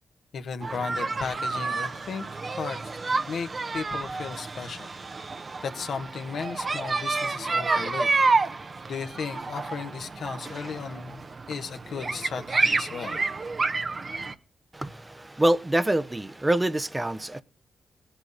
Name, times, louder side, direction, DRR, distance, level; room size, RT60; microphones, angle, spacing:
voice 1, 0.3-2.2 2.5-2.8 3.1-4.9 5.2-5.3 5.6-8.1 8.9-11.2 11.5-13.2, left 5 dB, 70° left, 1.3 m, -35 dB
sound 1, 0.6-14.3, right 3 dB, 45° right, 1.0 m, -29 dB
voice 2, 14.7-17.4, right 1 dB, 20° right, 0.8 m, -25 dB
18.0 x 8.1 x 4.1 m
supercardioid pair, 50°, 0 cm